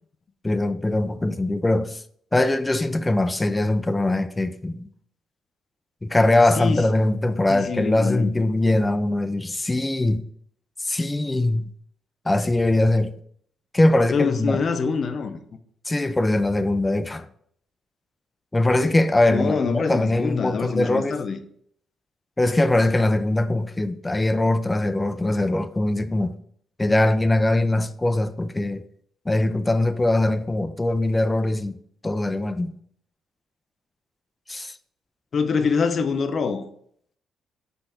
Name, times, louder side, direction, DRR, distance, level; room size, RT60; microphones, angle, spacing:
voice 1, 0.4-2.0 2.3-4.9 6.0-10.3 10.8-11.7 12.3-13.1 13.7-14.6 15.9-17.3 18.5-21.2 22.4-26.3 26.8-28.8 29.3-31.8 32.0-32.7 34.5-34.7, left 2 dB, 15° left, 0.4 m, -22 dB
voice 2, 7.5-8.3 14.1-15.4 19.3-21.4 35.3-36.7, left 5 dB, 45° left, 0.7 m, -25 dB
5.7 x 3.9 x 4.4 m
cardioid pair, 90°, 0 cm